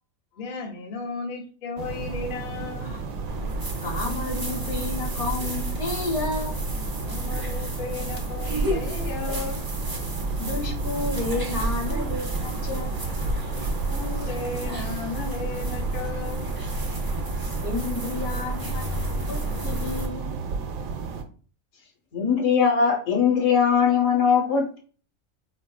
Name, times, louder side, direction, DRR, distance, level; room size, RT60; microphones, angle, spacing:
voice 1, 0.3-2.9 7.1-9.6 13.5-16.5, left 4 dB, 45° left, 0.8 m, -35 dB
sound 1, 1.8-21.2, right 5 dB, 85° right, 1.1 m, -33 dB
sound 2, 3.3-20.1, right 1 dB, 30° right, 0.4 m, -31 dB
voice 2, 3.8-6.6 10.4-13.1 17.6-20.4, left 3 dB, 90° left, 1.7 m, -31 dB
voice 3, 22.1-24.8, left 6 dB, 65° left, 1.3 m, -20 dB
4.4 x 2.4 x 2.3 m
omnidirectional pair, 1.4 m